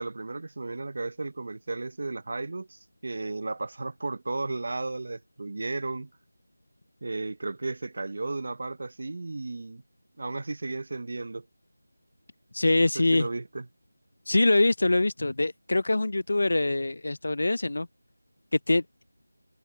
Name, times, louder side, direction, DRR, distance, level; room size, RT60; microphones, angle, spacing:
voice 1, 0.0-6.1 7.0-9.8 10.2-11.4 12.8-12.9 13.1-13.7, right 3 dB, 35° right, 0.6 m, -34 dB
voice 2, 12.5-13.3 14.3-17.9 18.7-19.0, left 2 dB, 45° left, 0.4 m, -24 dB
figure-of-eight pair, 180°, 0 cm